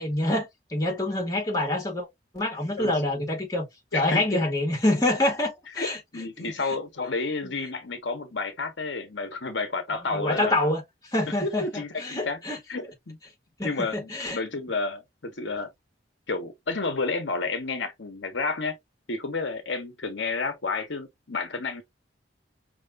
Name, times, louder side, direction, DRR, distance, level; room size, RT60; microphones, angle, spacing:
voice 1, 0.0-2.1 2.3-3.6 3.9-6.0 7.4-7.5 10.1-10.8 11.1-12.6 13.6-14.4, left 1 dB, 20° left, 1.7 m, -26 dB
voice 2, 3.9-4.4 5.8-5.9 6.1-10.6 11.4-12.4 12.7-13.2 13.6-15.7 16.3-18.8 19.1-21.8, left 3 dB, 75° left, 1.0 m, -30 dB
5.6 x 3.0 x 2.4 m
head